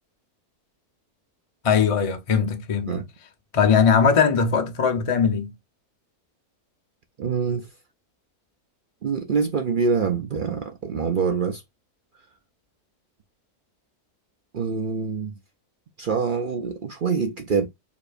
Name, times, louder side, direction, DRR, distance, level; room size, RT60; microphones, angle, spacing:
voice 1, 1.6-3.0 3.5-5.5, left 6 dB, 40° left, 0.5 m, -20 dB
voice 2, 7.2-7.7 9.0-11.6 14.5-15.3 16.0-17.7, right 5 dB, 65° right, 0.5 m, -25 dB
6.8 x 2.8 x 2.5 m
omnidirectional pair, 1.6 m